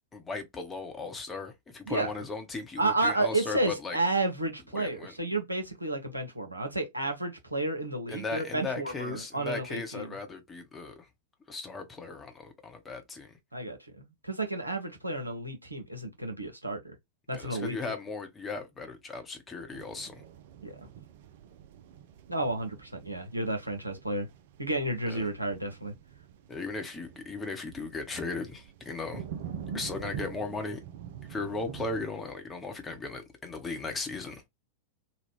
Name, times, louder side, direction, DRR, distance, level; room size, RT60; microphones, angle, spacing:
voice 1, 0.1-4.0 4.7-5.1 8.1-11.1 11.5-13.3 17.3-20.2 25.1-25.3 26.5-29.2 29.7-30.8 31.3-34.4, left 3 dB, 15° left, 0.9 m, -37 dB
voice 2, 2.8-10.1 13.5-16.9 17.3-17.9 20.6-20.8 22.3-24.3 24.6-25.9, right 2 dB, 85° right, 0.9 m, -31 dB
sound 1, 19.7-32.1, right 8 dB, 55° right, 0.4 m, -45 dB
3.0 x 2.3 x 3.4 m
figure-of-eight pair, 90°, 0 cm